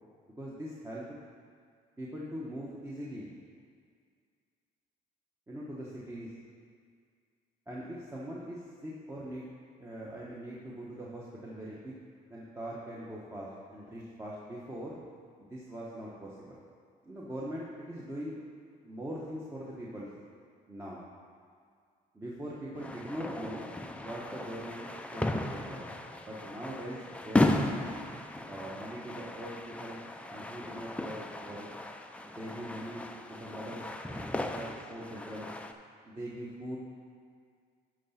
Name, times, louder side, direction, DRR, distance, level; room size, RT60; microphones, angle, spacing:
voice 1, 0.4-1.2 2.0-3.3 5.5-6.3 7.7-9.4 9.8-11.9 12.3-15.0 15.4-16.6 17.0-18.4 18.8-20.1 20.7-21.0 22.1-23.7 24.0-24.8 25.1-25.9 26.3-27.9 28.5-30.0 30.3-31.7 32.2-35.5 36.0-36.8, right 1 dB, 15° right, -6 dB, 1.1 m, -42 dB
sound 1, 22.7-35.7, left 1 dB, 5° left, 0.5 m, -35 dB
11.5 x 3.9 x 5.7 m, 2.1 s
cardioid pair, 110°, 17 cm